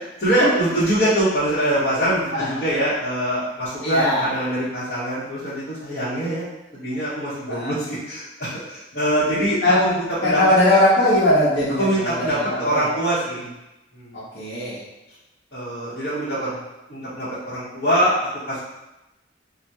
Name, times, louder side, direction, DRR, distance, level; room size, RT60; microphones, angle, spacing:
voice 1, 0.2-6.5 6.7-10.4 11.8-13.5 13.9-14.2 15.5-16.5 16.9-18.6, right 1 dB, 50° left, -14 dB, 1.0 m, -23 dB
voice 2, 3.8-4.4 7.5-7.8 9.6-12.8 14.1-14.8 16.4-16.5, left 1 dB, 75° left, -10 dB, 0.9 m, -20 dB
2.8 x 2.1 x 3.4 m, 0.96 s
head